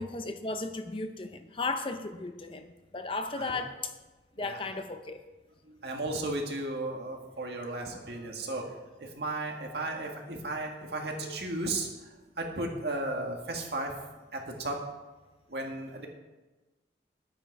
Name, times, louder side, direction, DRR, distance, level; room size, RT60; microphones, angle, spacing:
voice 1, 0.0-2.7 2.9-3.9 4.4-5.2, left 3 dB, 30° left, 8 dB, 0.6 m, -35 dB
voice 2, 5.8-8.7 9.2-11.9 12.4-13.9 14.3-14.8 15.5-16.1, right 2 dB, 65° right, 1 dB, 2.0 m, -34 dB
12.0 x 9.2 x 4.7 m, 1.2 s
head